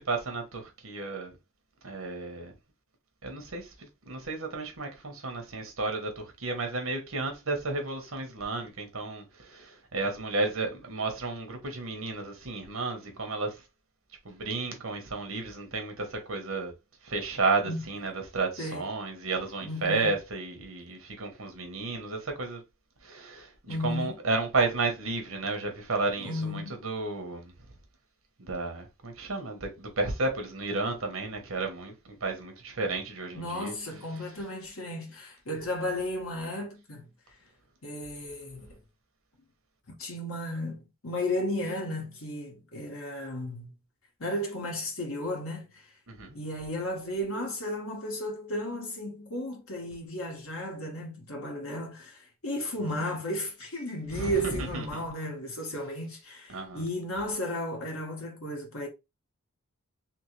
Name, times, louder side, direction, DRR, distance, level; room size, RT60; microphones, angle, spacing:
voice 1, 0.0-1.3 1.8-2.5 3.2-13.6 14.2-16.7 17.0-22.6 23.0-27.5 28.4-33.7 46.1-46.4 54.1-55.0 56.5-56.8, right 3 dB, 70° right, 1.2 m, -32 dB
voice 2, 19.6-20.1 23.7-24.2 26.2-26.8 33.3-37.1 37.8-38.8 40.0-43.7 44.2-45.8 46.3-58.9, left 1 dB, 75° left, 1.6 m, -34 dB
3.6 x 3.2 x 3.2 m
head